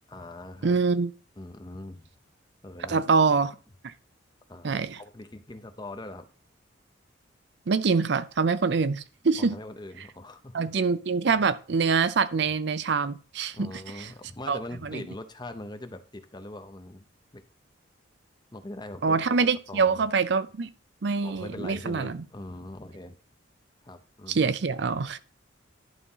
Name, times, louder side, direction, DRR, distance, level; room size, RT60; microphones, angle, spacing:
voice 1, 0.1-0.8 1.4-2.1 2.6-3.0 4.5-6.3 9.4-10.6 13.5-17.0 17.3-17.4 18.5-20.0 21.2-23.2 23.8-24.5, left 1 dB, 20° left, 0.7 m, -42 dB
voice 2, 0.6-1.1 2.9-3.5 3.8-3.9 4.6-5.0 7.7-9.5 10.5-14.1 14.5-15.0 19.0-20.7 21.0-22.2 24.3-25.2, right 4 dB, 60° right, 0.5 m, -25 dB
11.0 x 4.1 x 5.6 m
head